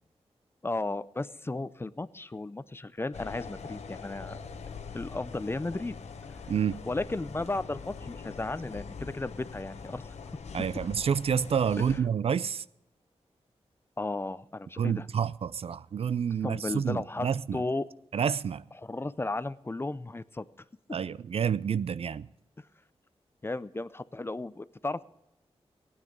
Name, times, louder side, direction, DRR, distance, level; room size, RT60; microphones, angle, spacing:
voice 1, 0.6-4.4 4.9-5.9 6.9-10.2 14.0-15.1 16.4-17.9 18.8-20.5 23.4-25.0, left 2 dB, 20° left, 0.5 m, -34 dB
sound 1, 3.1-12.0, left 5 dB, 85° left, 0.9 m, -43 dB
voice 2, 6.5-6.8 10.5-12.6 14.8-17.6 18.1-18.6 20.9-22.3, right 7 dB, 60° right, 0.4 m, -29 dB
16.5 x 9.7 x 5.3 m
wide cardioid pair, 80°, 11 cm